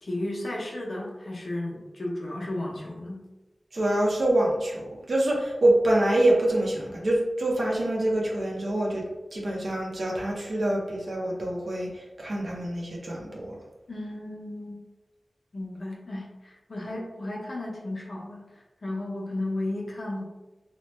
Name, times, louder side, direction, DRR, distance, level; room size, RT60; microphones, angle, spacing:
voice 1, 0.0-3.2 13.9-14.8 15.5-18.5 18.8-20.2, left 1 dB, 60° left, -2 dB, 0.7 m, -34 dB
voice 2, 3.7-9.0 9.3-13.5, right 1 dB, 65° right, -2 dB, 0.7 m, -25 dB
2.9 x 2.2 x 3.1 m, 1.1 s
wide cardioid pair, 80°, 0 cm